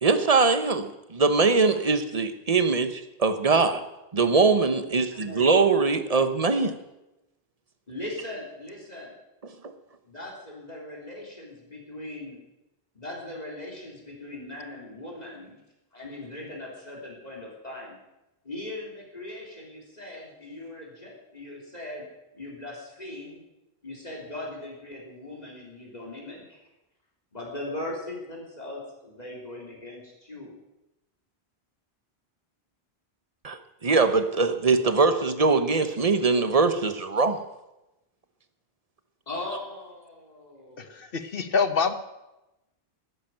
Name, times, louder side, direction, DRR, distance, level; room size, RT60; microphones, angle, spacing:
voice 1, 0.0-3.8 4.1-6.7 33.4-37.4, right 4 dB, 35° right, 10 dB, 1.1 m, -22 dB
voice 2, 5.1-5.8 7.9-9.1 10.0-12.4 12.9-15.6 15.9-18.0 18.4-22.1 22.3-23.4 23.8-26.6 27.3-30.6 39.3-41.0, left 1 dB, 40° left, -1 dB, 3.6 m, -39 dB
voice 3, 40.8-41.9, left 5 dB, 60° left, 11 dB, 1.3 m, -26 dB
13.5 x 10.0 x 9.0 m, 0.97 s
omnidirectional pair, 1.1 m